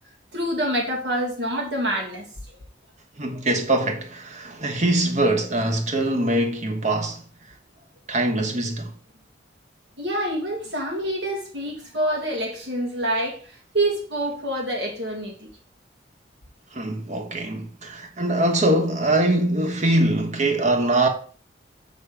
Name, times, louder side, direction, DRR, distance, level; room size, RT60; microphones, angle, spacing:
voice 1, 0.3-2.3 10.0-13.4 13.7-15.4, right 1 dB, 70° right, 2.3 m, -26 dB
voice 2, 3.2-7.2 8.1-8.9 16.7-21.1, right 1 dB, 40° right, 1.2 m, -23 dB
6.9 x 4.0 x 5.0 m
head